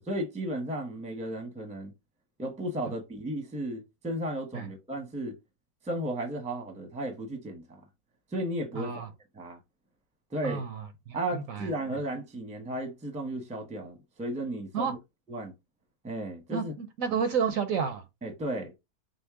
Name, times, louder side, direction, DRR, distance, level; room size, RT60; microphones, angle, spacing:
voice 1, 0.1-1.9 2.4-5.4 5.8-7.8 8.3-9.1 9.3-9.6 10.3-10.6 11.1-15.0 15.3-15.5 16.0-16.7 18.2-18.7, right 1 dB, 5° right, 0.7 m, -34 dB
voice 2, 8.8-9.1 10.4-11.7 14.7-14.9 16.5-18.0, right 6 dB, 70° right, 1.0 m, -31 dB
5.3 x 2.0 x 3.5 m
omnidirectional pair, 1.6 m